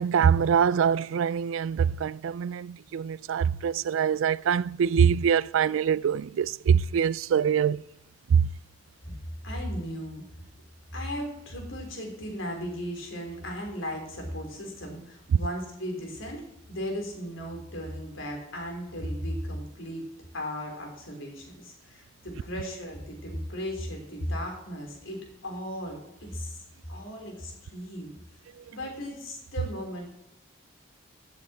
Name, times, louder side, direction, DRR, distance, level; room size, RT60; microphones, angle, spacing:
voice 1, 0.0-7.8 8.3-8.5, right 7 dB, 80° right, 0.3 m, -24 dB
voice 2, 9.4-10.2 10.9-20.1 20.3-28.1 28.7-30.1, equal, 75° left, 3.7 m, -36 dB
16.0 x 8.1 x 4.4 m
head